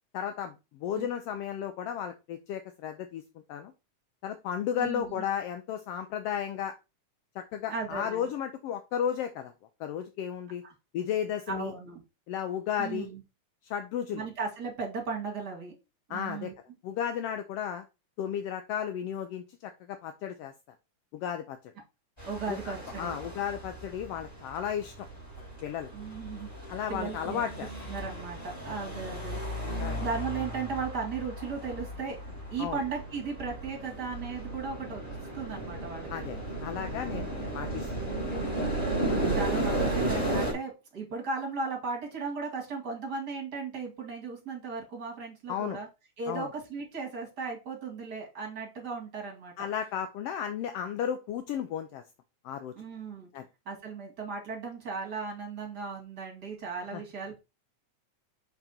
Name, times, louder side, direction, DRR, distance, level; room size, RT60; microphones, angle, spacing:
voice 1, 0.1-3.2 3.5-3.7 4.2-6.7 7.3-9.5 9.8-10.6 10.9-11.7 12.3-13.1 13.6-14.2 16.1-16.5 16.8-17.8 18.2-20.5 21.1-21.6 22.5-24.9 25.4-25.9 26.7-27.7 28.7-28.8 29.8-30.0 32.6-32.8 36.1-37.8 38.3-38.4 45.5-45.8 46.3-46.5 49.6-52.0 52.4-52.7 53.3-53.4 56.9-57.0, left 9 dB, 80° left, 8 dB, 1.4 m, -34 dB
voice 2, 4.8-5.2 7.7-8.3 10.6-10.7 11.5-12.0 12.8-13.2 14.1-15.7 16.1-16.5 22.2-23.1 25.9-27.4 27.9-29.6 30.0-35.0 35.3-36.1 37.1-37.5 39.3-45.9 46.2-49.5 52.8-53.3 53.7-57.4, right 4 dB, 35° right, 0 dB, 2.5 m, -36 dB
sound 1, 22.2-40.5, right 1 dB, 10° left, 4.0 m, -34 dB
6.0 x 5.2 x 4.2 m, 0.26 s
omnidirectional pair, 3.4 m